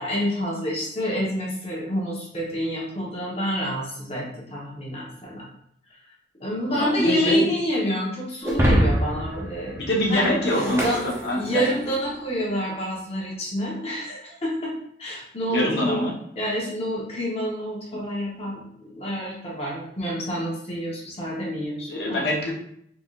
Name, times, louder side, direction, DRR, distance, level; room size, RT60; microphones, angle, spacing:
voice 1, 0.0-5.5 6.4-9.8 10.1-11.0 11.4-14.7 15.0-22.3, equal, 30° left, -4 dB, 1.1 m, -28 dB
voice 2, 6.7-7.4 9.7-11.6 15.5-16.1 21.9-22.5, left 1 dB, 60° left, -3 dB, 1.0 m, -24 dB
Shatter, 8.4-11.9, equal, 15° right, 0.6 m, -25 dB
3.8 x 3.5 x 2.4 m, 0.70 s
head